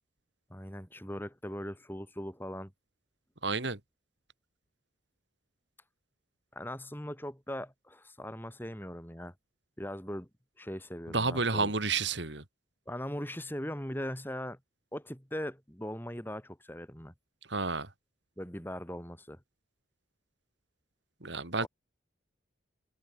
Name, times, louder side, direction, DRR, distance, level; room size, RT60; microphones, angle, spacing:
voice 1, 0.5-2.7 6.5-9.3 9.8-10.3 10.6-11.7 12.9-14.6 14.9-17.1 18.4-19.4 21.6-21.7, equal, 10° left, 4.9 m, -40 dB
voice 2, 3.4-3.8 11.1-12.4 17.5-17.9 21.2-21.7, right 4 dB, 70° right, 2.9 m, -30 dB
head